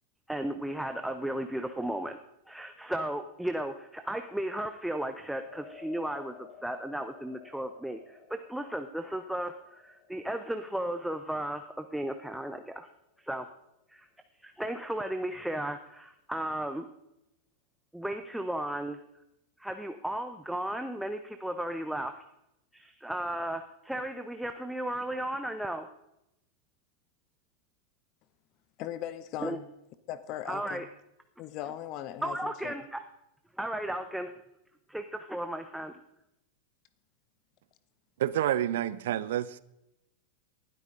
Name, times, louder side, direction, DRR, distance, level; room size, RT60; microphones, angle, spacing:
voice 1, 0.3-2.2 2.5-12.9 13.2-13.5 13.9-14.1 14.4-16.9 17.9-19.0 19.6-22.1 22.7-25.9 29.4-29.6 30.5-30.9 32.2-33.0 33.6-34.3 34.9-35.9, right 1 dB, ahead, 0.8 m, -35 dB
sound 1, 5.4-13.8, left 6 dB, 60° left, 3.8 m, -55 dB
voice 2, 28.8-29.7 30.1-30.9 31.4-32.7, left 12 dB, 40° left, 0.9 m, -38 dB
voice 3, 38.2-39.6, right 12 dB, 55° right, 0.6 m, -28 dB
19.5 x 12.5 x 3.8 m
figure-of-eight pair, 90°, 0 cm